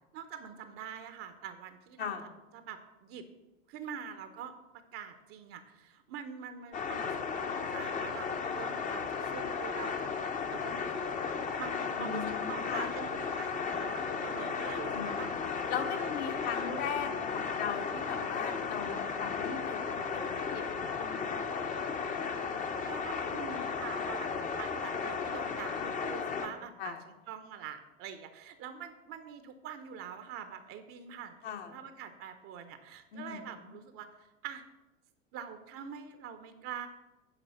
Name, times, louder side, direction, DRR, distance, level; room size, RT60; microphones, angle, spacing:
voice 1, 0.1-2.1 2.5-3.3 3.7-4.5 4.9-8.3 8.5-10.2 10.5-11.1 11.6-16.1 22.4-31.4 31.7-34.6 35.3-36.9, right 8 dB, 35° right, 9 dB, 0.9 m, -45 dB
sound 1, 6.7-26.5, left 5 dB, 20° left, 0.9 m, -35 dB
voice 2, 12.0-12.9 14.9-15.2 15.7-22.2 26.1-27.0 31.4-31.7 33.1-33.7, left 7 dB, 55° left, 4 dB, 1.5 m, -39 dB
11.0 x 4.7 x 5.8 m, 0.99 s
figure-of-eight pair, 90°, 39 cm